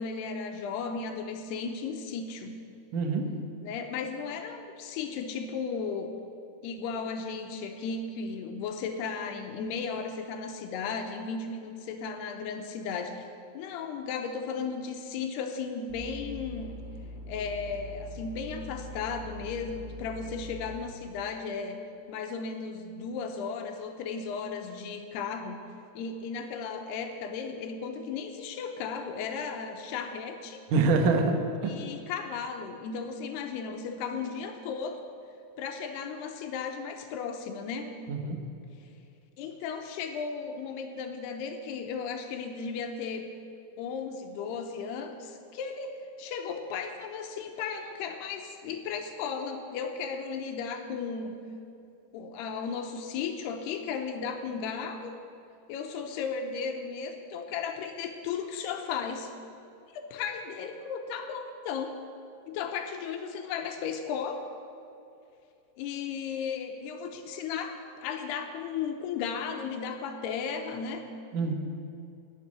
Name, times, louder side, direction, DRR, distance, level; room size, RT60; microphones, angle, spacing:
voice 1, 0.0-2.5 3.6-6.1 6.6-13.3 13.5-16.8 17.3-21.8 22.1-25.6 26.0-30.6 31.6-35.0 35.6-37.9 39.4-43.3 43.8-51.4 52.1-55.1 55.7-59.3 59.9-62.0 62.5-64.5 65.8-71.0, left 5 dB, 85° left, 5 dB, 2.8 m, -35 dB
voice 2, 2.9-3.3 30.7-31.8 38.1-38.4 71.3-71.5, right 3 dB, 65° right, 4 dB, 2.2 m, -25 dB
sound 1, 15.9-20.8, left 1 dB, 40° right, 2.1 m, -43 dB
11.5 x 7.4 x 9.7 m, 2.6 s
omnidirectional pair, 4.8 m